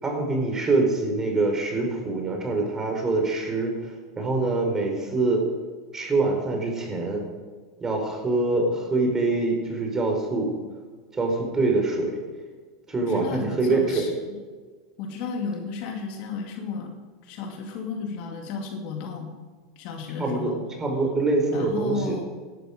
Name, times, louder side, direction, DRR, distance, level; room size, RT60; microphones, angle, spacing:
voice 1, 0.0-5.5 5.9-7.2 7.8-10.5 11.1-12.2 12.9-14.2 20.2-20.5 20.8-22.2, right 3 dB, 20° right, 1 dB, 5.2 m, -24 dB
voice 2, 13.0-14.4 15.0-16.9 17.2-19.4 19.8-20.6 21.5-22.3, left 5 dB, 55° left, 3 dB, 2.5 m, -33 dB
17.5 x 11.5 x 5.3 m, 1.4 s
hypercardioid pair, 100°, 3 cm